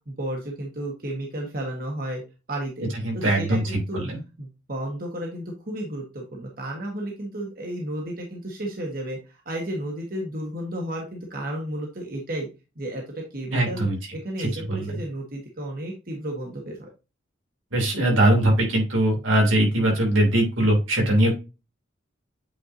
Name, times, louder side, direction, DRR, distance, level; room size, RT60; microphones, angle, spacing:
voice 1, 0.1-2.2 2.5-2.9 3.1-4.0 4.4-12.5 12.8-13.9 14.1-16.9, right 1 dB, 45° right, 0 dB, 1.4 m, -33 dB
voice 2, 3.0-3.6 3.9-4.2 13.5-14.0 14.4-14.9 17.7-21.3, right 1 dB, 85° right, 0 dB, 3.2 m, -21 dB
8.5 x 4.5 x 2.7 m, 0.28 s
head